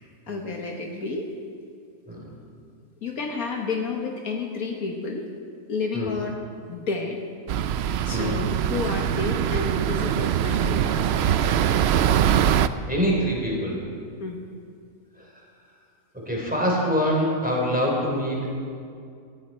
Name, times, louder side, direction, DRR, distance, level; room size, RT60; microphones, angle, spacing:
voice 1, 0.0-1.3 3.0-5.3 5.7-6.4 6.7-7.2 8.1-11.3 14.2-14.4, left 4 dB, 65° left, 1 dB, 1.7 m, -31 dB
sound 1, 7.5-12.7, right 9 dB, 85° right, 0.5 m, -22 dB
voice 2, 7.8-8.4 12.5-13.8 15.2-15.3 16.1-18.5, equal, 5° right, -3 dB, 3.5 m, -26 dB
18.5 x 14.0 x 4.3 m, 2.3 s
omnidirectional pair, 1.6 m